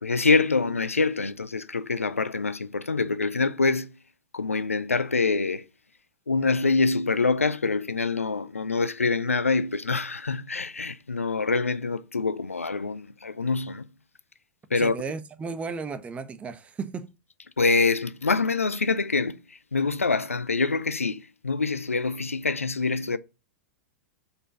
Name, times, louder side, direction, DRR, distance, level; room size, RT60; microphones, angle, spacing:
voice 1, 0.0-4.0 4.3-5.6 6.3-13.9 14.7-15.0 17.6-23.2, left 4 dB, 85° left, 0.4 m, -25 dB
voice 2, 14.7-17.1, right 5 dB, 20° right, 0.7 m, -34 dB
5.0 x 4.5 x 5.8 m
figure-of-eight pair, 100°, 7 cm